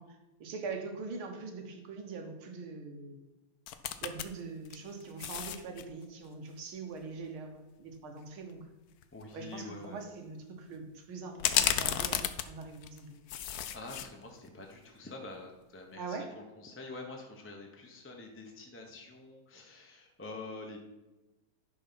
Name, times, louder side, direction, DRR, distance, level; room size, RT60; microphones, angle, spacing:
voice 1, 0.0-3.2 4.0-8.6 9.3-13.2 16.0-16.3, right 4 dB, 85° right, 5 dB, 2.1 m, -43 dB
sound 1, 3.7-4.3 4.6-5.8 8.5-8.6 9.0-9.2 11.4-13.0 13.3-14.1 14.5-14.6, left 10 dB, 85° left, 0.8 m, -32 dB
voice 2, 9.1-10.0 13.7-20.8, left 3 dB, 10° left, 1 dB, 0.6 m, -46 dB
11.0 x 4.6 x 5.8 m, 1.1 s
omnidirectional pair, 2.3 m